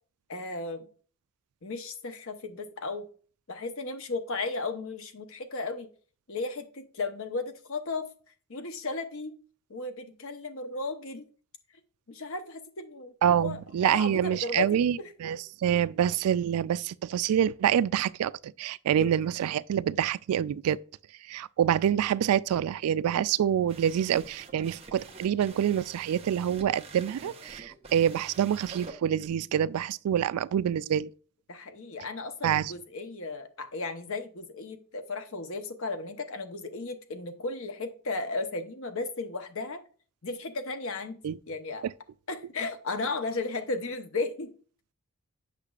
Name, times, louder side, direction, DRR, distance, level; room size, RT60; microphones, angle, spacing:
voice 1, 0.3-0.9 1.6-3.1 3.5-5.9 6.3-8.1 8.5-9.3 9.7-11.3 12.1-13.1 13.4-15.3 19.0-19.1 31.5-39.8 40.2-41.2 41.5-41.9 42.3-44.5, left 3 dB, 65° left, 0.9 m, -35 dB
voice 2, 13.2-20.8 21.3-31.1 32.4-32.7 41.2-41.4, right 9 dB, 85° right, 0.3 m, -26 dB
sound 1, 23.7-29.3, right 4 dB, 25° right, 0.8 m, -47 dB
8.2 x 5.8 x 2.4 m
head